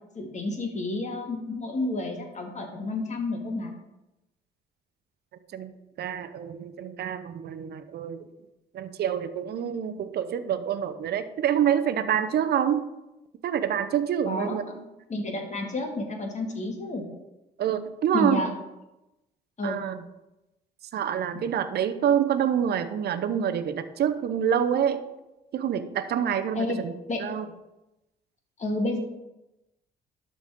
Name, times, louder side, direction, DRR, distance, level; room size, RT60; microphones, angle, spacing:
voice 1, 0.2-3.7 14.3-14.6 15.1-17.1 18.1-18.5 19.6-19.8 26.5-26.8 27.1-27.2 28.6-29.0, left 2 dB, 40° left, 2 dB, 2.0 m, -30 dB
voice 2, 6.0-8.2 8.7-12.8 13.4-14.8 17.6-18.4 19.6-20.0 20.9-25.0 25.5-26.9 27.2-27.5, right 9 dB, 60° right, 11 dB, 0.7 m, -27 dB
12.0 x 4.1 x 3.7 m, 0.95 s
supercardioid pair, 60°, 19 cm